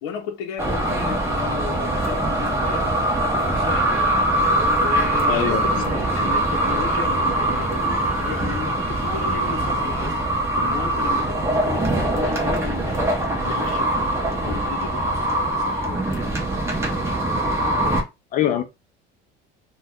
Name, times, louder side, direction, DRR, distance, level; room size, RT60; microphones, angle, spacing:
voice 1, 0.0-16.3, left 8 dB, 90° left, 0.6 m, -35 dB
sound 1, 0.6-18.0, right 1 dB, 10° right, 0.6 m, -22 dB
voice 2, 5.3-5.8 18.3-18.6, left 11 dB, 40° left, 0.5 m, -23 dB
2.6 x 2.2 x 3.4 m
cardioid pair, 150°, 21 cm